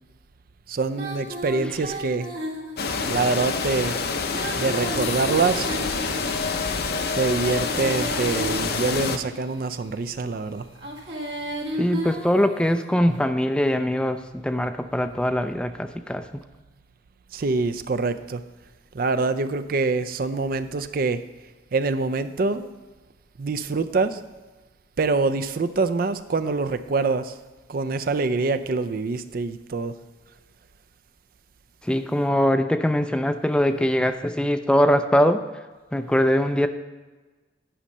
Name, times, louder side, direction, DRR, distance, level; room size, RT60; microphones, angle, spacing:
voice 1, 0.7-2.3 3.1-4.0 4.6-5.7 7.1-10.7 17.3-18.4 18.9-21.2 21.7-22.7 23.4-24.2 25.0-27.3 27.7-29.9, right 3 dB, 55° right, 11 dB, 0.5 m, -25 dB
Female singing, 0.9-3.1 4.2-6.5 7.3-9.5 10.7-13.0, equal, 75° right, 1.9 m, -34 dB
sound 1, 2.8-9.2, left 4 dB, 60° left, 0.7 m, -27 dB
sound 2, 5.0-12.7, left 9 dB, 90° left, 1.4 m, -46 dB
voice 2, 11.7-16.2 31.8-35.4 35.9-36.7, equal, 5° left, 9 dB, 0.3 m, -22 dB
10.0 x 5.5 x 5.2 m, 1.3 s
head